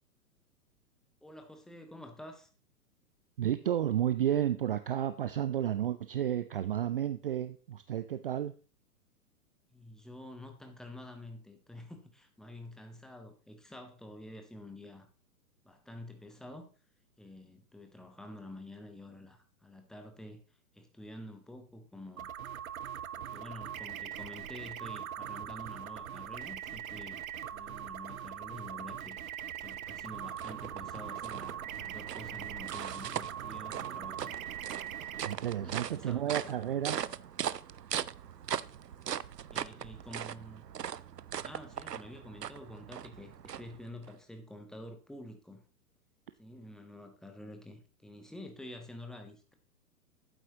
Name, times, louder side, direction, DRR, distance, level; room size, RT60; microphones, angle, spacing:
voice 1, 1.2-2.5 9.7-15.1 15.6-16.7 17.2-20.4 20.7-22.3 23.2-27.2 27.5-29.2 29.6-34.4 35.3-36.5 39.5-40.6 41.4-45.6 46.4-49.5, left 1 dB, ahead, 5 dB, 0.9 m, -48 dB
voice 2, 3.4-8.5 35.2-37.0, right 11 dB, 35° right, 12 dB, 0.5 m, -32 dB
sound 1, 22.2-35.3, right 10 dB, 60° right, 0.8 m, -41 dB
sound 2, 29.7-44.1, right 9 dB, 90° right, 0.6 m, -40 dB
11.5 x 9.1 x 2.9 m, 0.38 s
figure-of-eight pair, 115°, 47 cm